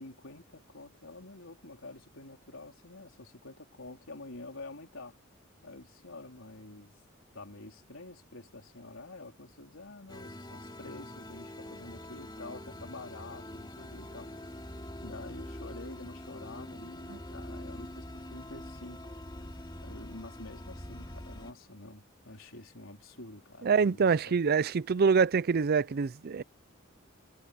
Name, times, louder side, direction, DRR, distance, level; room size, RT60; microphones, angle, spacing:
voice 1, 0.0-5.2 5.6-7.0 7.3-14.5 15.0-24.4, left 2 dB, 80° left, 4.0 m, -48 dB
sound 1, 10.1-21.5, left 1 dB, 20° left, 2.7 m, -44 dB
voice 2, 23.6-26.4, right 5 dB, 50° right, 0.5 m, -25 dB
head